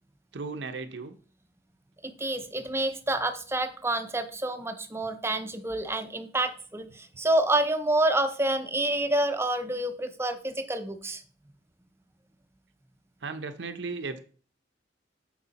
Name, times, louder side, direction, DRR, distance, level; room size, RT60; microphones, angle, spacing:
voice 1, 0.3-1.2 13.2-14.2, right 4 dB, 75° right, 9 dB, 0.7 m, -35 dB
voice 2, 2.0-11.2, right 1 dB, 15° right, 8 dB, 0.7 m, -28 dB
8.2 x 4.8 x 4.1 m, 0.41 s
head